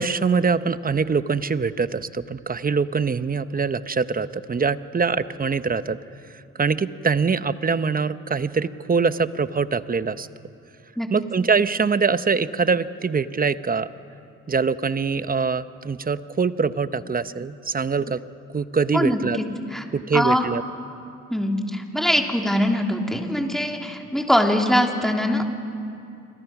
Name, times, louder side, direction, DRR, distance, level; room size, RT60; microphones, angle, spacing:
voice 1, 0.0-6.0 6.3-10.3 11.1-13.9 14.5-18.2 18.5-19.4 19.9-20.6, right 5 dB, 30° right, 13 dB, 0.9 m, -23 dB
voice 2, 18.9-19.4 19.7-19.8 20.1-20.4 21.3-25.6, equal, ahead, 2 dB, 3.3 m, -22 dB
27.0 x 25.5 x 6.1 m, 2.6 s
supercardioid pair, 65°, 30 cm